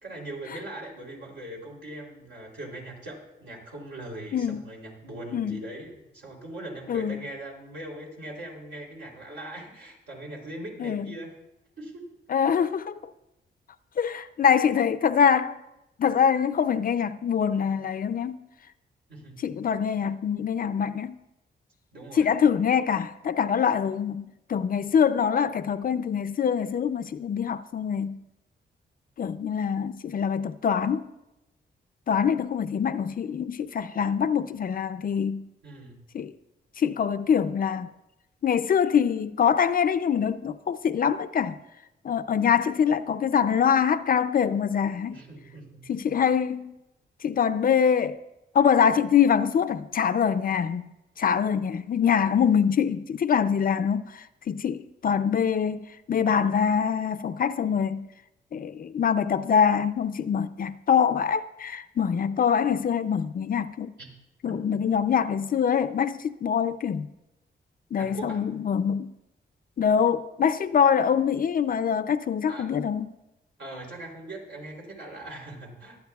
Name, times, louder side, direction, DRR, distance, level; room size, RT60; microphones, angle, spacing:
voice 1, 0.0-11.3 11.8-12.1 19.1-19.4 21.9-22.3 35.6-36.0 45.1-45.9 64.0-64.1 64.5-64.8 68.0-68.4 72.5-72.7 73.6-76.0, right 1 dB, 75° right, 3.3 m, -40 dB
voice 2, 4.3-4.6 5.3-5.6 6.9-7.2 10.8-11.2 12.3-12.9 14.0-15.6 16.0-18.5 19.4-21.2 22.2-28.2 29.2-31.1 32.1-35.5 36.1-36.3 36.8-37.9 38.4-41.6 42.0-45.2 45.9-46.8 47.2-48.2 48.5-50.9 51.2-58.1 58.5-63.9 64.4-67.1 67.9-69.1 69.8-73.1, left 7 dB, 50° left, 0.5 m, -24 dB
24.0 x 9.0 x 2.3 m
cardioid pair, 105°, 19 cm